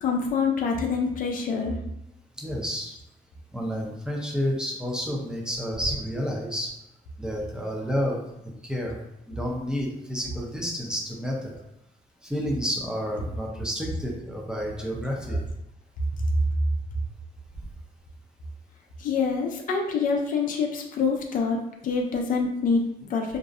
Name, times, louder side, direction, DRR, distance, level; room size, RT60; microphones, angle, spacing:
voice 1, 0.0-1.8 7.5-7.6 15.3-15.4 16.2-16.3 19.0-23.4, left 5 dB, 60° left, 2 dB, 0.4 m, -26 dB
voice 2, 2.4-2.9 3.5-6.7 7.2-8.2 8.6-9.0 9.3-11.5 12.2-15.4, equal, 5° right, -2 dB, 0.5 m, -30 dB
2.5 x 2.0 x 2.4 m, 0.84 s
cardioid pair, 125°, 16 cm